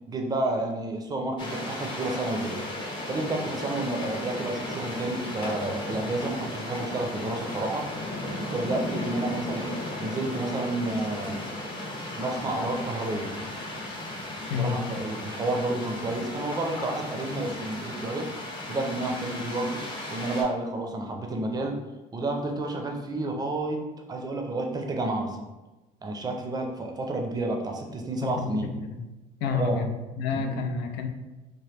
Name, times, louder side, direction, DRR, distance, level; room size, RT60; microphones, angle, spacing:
voice 1, 0.1-2.6 3.1-7.8 8.5-11.4 12.2-13.3 14.6-18.3 18.7-19.8 20.1-21.8 22.1-23.8 24.1-25.4 26.0-28.7 29.5-29.8 30.3-30.7, right 2 dB, 25° right, 2 dB, 0.5 m, -30 dB
sound 1, 1.4-20.4, left 1 dB, 30° left, 0.7 m, -35 dB
voice 2, 14.5-14.8 28.2-29.0 29.4-31.1, left 5 dB, 85° left, 5 dB, 0.5 m, -29 dB
3.0 x 2.1 x 3.2 m, 1.1 s
cardioid pair, 110°, 17 cm